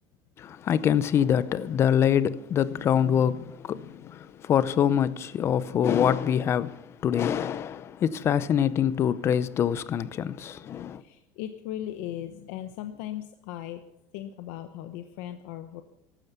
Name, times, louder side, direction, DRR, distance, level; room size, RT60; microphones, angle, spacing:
voice 1, 0.4-11.0, left 9 dB, 30° left, 0.6 m, -25 dB
voice 2, 11.0-13.8 14.1-15.8, left 12 dB, 70° left, 0.9 m, -37 dB
15.0 x 12.5 x 5.8 m
cardioid pair, 150°, 9 cm